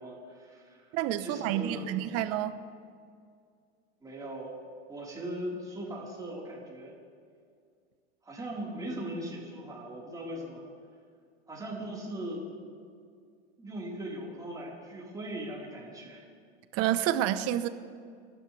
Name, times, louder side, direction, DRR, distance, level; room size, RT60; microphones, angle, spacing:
voice 1, 0.0-1.9 4.0-4.6 4.9-6.9 8.2-10.6 11.5-12.5 13.6-16.2, right 1 dB, 10° right, -4 dB, 4.5 m, -39 dB
voice 2, 0.9-2.6 16.7-17.7, right 12 dB, 50° right, 11 dB, 1.1 m, -29 dB
29.0 x 12.0 x 3.4 m, 2.2 s
hypercardioid pair, 105°, 32 cm